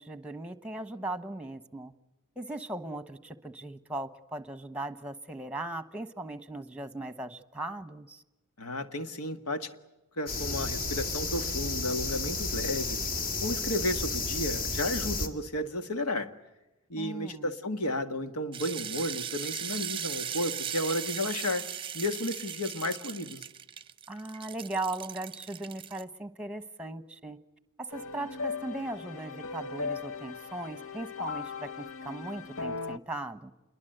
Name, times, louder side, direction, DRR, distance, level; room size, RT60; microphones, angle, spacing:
voice 1, 0.0-1.9 2.4-8.2 17.0-17.5 24.1-27.4 27.8-33.5, right 2 dB, 5° right, 1.2 m, -38 dB
voice 2, 8.6-9.7 10.2-13.1 13.4-16.3 16.9-21.7 21.9-23.4, left 1 dB, 85° left, 1.8 m, -33 dB
sound 1, 10.3-15.3, left 3 dB, 45° left, 2.3 m, -32 dB
sound 2, 18.5-26.0, right 8 dB, 25° right, 0.8 m, -38 dB
sound 3, 27.9-33.0, left 4 dB, 60° left, 0.9 m, -38 dB
28.0 x 22.5 x 7.9 m
head